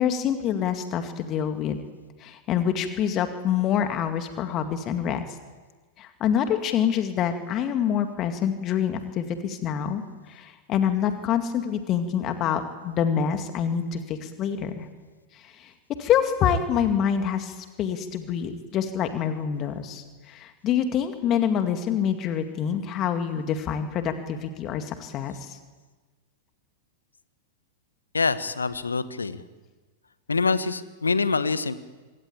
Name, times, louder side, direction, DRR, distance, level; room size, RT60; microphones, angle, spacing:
voice 1, 0.0-1.8 2.2-5.4 6.0-14.9 15.3-25.6, left 8 dB, 30° left, 7 dB, 2.2 m, -26 dB
voice 2, 28.1-29.4 30.3-31.7, left 4 dB, 75° left, 14 dB, 1.4 m, -25 dB
26.5 x 22.0 x 8.6 m, 1.3 s
figure-of-eight pair, 95°, 0 cm